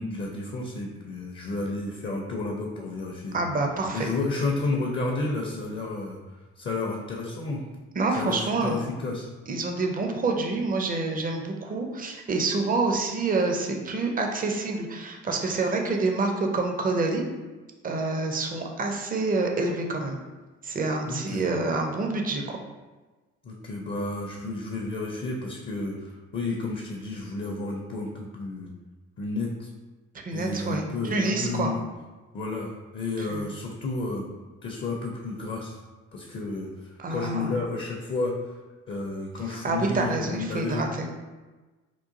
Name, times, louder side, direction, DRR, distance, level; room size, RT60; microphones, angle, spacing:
voice 1, 0.0-3.3 3.9-7.7 8.2-9.3 21.1-21.4 23.4-28.7 29.2-29.7 30.3-31.8 32.3-34.2 34.6-35.8 36.1-38.3 38.9-40.8, left 3 dB, 30° left, -1 dB, 0.5 m, -31 dB
voice 2, 3.3-4.1 8.0-8.8 9.5-17.3 17.8-20.2 20.6-22.6 30.2-30.9 31.1-31.7 33.2-33.5 37.0-37.5 39.5-41.1, right 3 dB, 25° right, 2 dB, 0.5 m, -27 dB
3.7 x 2.4 x 2.5 m, 1.2 s
figure-of-eight pair, 45°, 37 cm